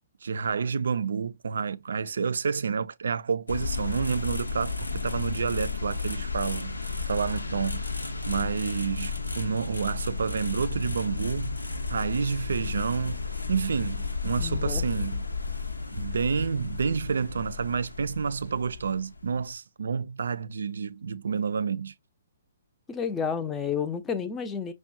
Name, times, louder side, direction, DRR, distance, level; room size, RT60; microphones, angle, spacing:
voice 1, 0.2-7.9 8.3-11.6 11.9-15.3 15.9-21.9, right 6 dB, 65° right, 0.4 m, -29 dB
sound 1, 3.5-19.5, left 4 dB, 80° left, 0.7 m, -33 dB
voice 2, 14.4-14.8 22.9-24.7, left 6 dB, 15° left, 0.6 m, -30 dB
5.9 x 2.2 x 2.6 m
figure-of-eight pair, 125°, 0 cm